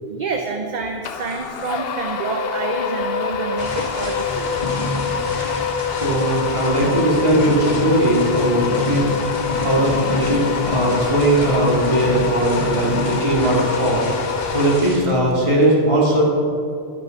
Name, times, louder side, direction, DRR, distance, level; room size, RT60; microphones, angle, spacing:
voice 1, 0.1-4.5, right 4 dB, 50° right, 3 dB, 0.7 m, -28 dB
sound 1, 1.0-15.3, left 6 dB, 70° left, 0.8 m, -26 dB
sound 2, 3.6-15.0, left 1 dB, 45° left, 2.5 m, -28 dB
voice 2, 5.9-14.0 14.5-16.2, right 1 dB, 30° right, -5 dB, 2.4 m, -19 dB
11.0 x 5.6 x 5.9 m, 2.5 s
omnidirectional pair, 1.1 m